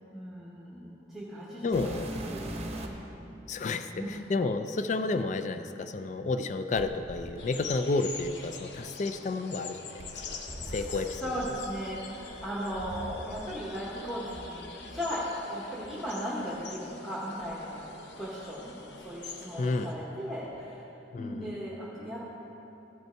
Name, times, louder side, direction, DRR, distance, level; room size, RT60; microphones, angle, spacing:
voice 1, 0.1-2.9 3.7-4.2 10.7-20.9 21.2-22.3, equal, ahead, -7 dB, 1.1 m, -37 dB
voice 2, 1.6-2.1 3.5-3.9 4.3-9.9 10.3-10.4 10.7-11.2 19.6-19.9 21.1-21.6, left 3 dB, 40° left, 9 dB, 0.3 m, -31 dB
sound 1, 1.7-3.1 4.0-4.1 6.7-8.8 10.0-13.7 14.0-15.0 15.8-15.9 16.5-16.6 17.3-18.4 18.7-19.2 20.5-20.6, right 1 dB, 35° right, 0.8 m, -43 dB
sound 2, 7.4-19.9, left 4 dB, 70° left, 0.8 m, -45 dB
15.5 x 5.5 x 4.5 m, 2.9 s
head